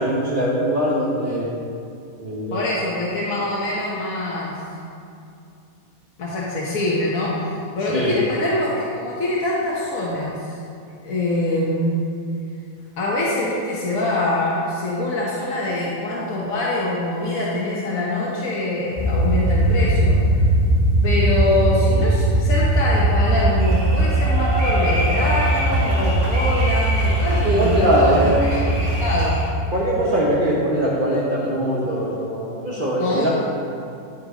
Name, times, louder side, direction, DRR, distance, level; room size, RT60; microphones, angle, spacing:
voice 1, 0.0-1.5 2.2-2.6 7.9-8.2 27.4-28.4 29.7-33.3, right 1 dB, 35° right, -7 dB, 1.3 m, -21 dB
voice 2, 2.5-4.5 6.2-10.5 11.0-12.0 13.0-20.2 21.0-29.4 33.0-33.3, left 2 dB, 70° left, -6 dB, 1.6 m, -24 dB
sound 1, 19.0-29.3, right 1 dB, 30° left, 1.6 m, -19 dB
sound 2, 23.6-29.5, equal, 60° right, 2.8 m, -28 dB
12.5 x 4.7 x 5.0 m, 2.6 s
omnidirectional pair, 1.5 m